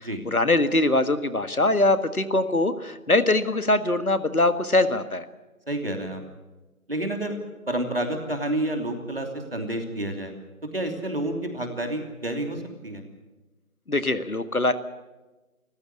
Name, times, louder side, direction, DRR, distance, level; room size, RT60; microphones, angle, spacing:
voice 1, 0.0-5.2 13.9-14.7, left 2 dB, 75° left, 11 dB, 1.8 m, -22 dB
voice 2, 5.7-6.2 6.9-7.4 7.7-10.3 10.7-13.0, right 1 dB, 40° right, 4 dB, 3.1 m, -29 dB
26.0 x 15.0 x 8.5 m, 1.1 s
figure-of-eight pair, 175°, 44 cm